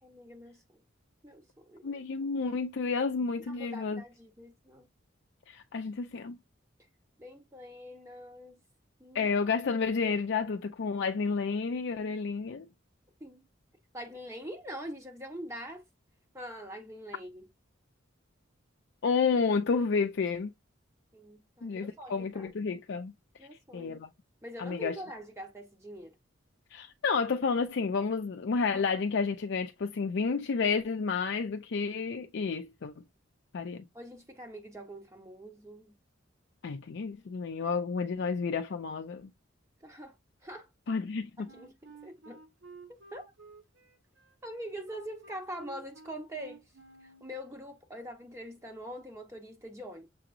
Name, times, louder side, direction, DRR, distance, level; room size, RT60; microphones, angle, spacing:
voice 1, 0.0-0.8 1.2-2.0 3.5-4.9 7.2-8.6 9.0-9.3 13.2-13.4 13.9-15.8 16.3-17.4 21.1-22.5 23.4-24.0 24.4-26.1 33.9-35.9 39.8-40.2 40.4-40.7 41.4-41.7 42.0-42.4 43.1-43.3 44.4-46.6 47.0-50.1, equal, 15° right, 0.9 m, -44 dB
voice 2, 1.8-4.0 5.5-6.4 9.1-12.7 19.0-20.5 21.6-23.1 23.7-24.1 24.6-25.0 26.7-32.9 33.5-33.8 36.6-39.3 40.9-41.5, left 5 dB, 65° left, 0.4 m, -30 dB
Wind instrument woodwind instrument, 41.4-47.3, right 4 dB, 75° right, 1.2 m, -53 dB
6.8 x 2.9 x 2.5 m
head